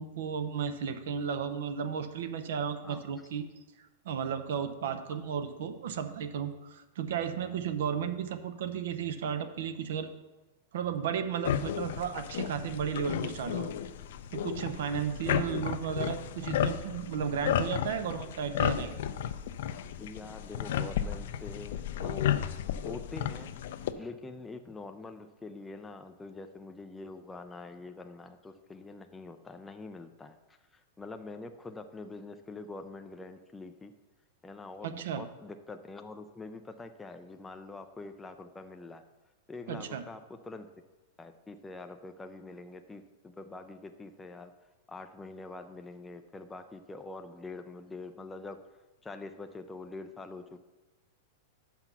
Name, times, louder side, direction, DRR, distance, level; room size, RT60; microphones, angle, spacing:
voice 1, 0.0-3.5 4.0-10.1 10.7-13.7 14.3-18.9 34.8-35.3 39.7-40.0, right 7 dB, 70° right, 10 dB, 0.7 m, -34 dB
sound 1, 11.4-23.9, left 10 dB, 65° left, 0.5 m, -33 dB
voice 2, 15.3-15.7 20.0-23.5 24.0-30.4 30.7-33.9 34.4-39.0 39.5-40.7 41.2-44.5 44.9-48.6 49.0-50.6, left 3 dB, 10° left, 6 dB, 0.3 m, -45 dB
6.7 x 5.8 x 6.0 m, 1.1 s
supercardioid pair, 155°, 0 cm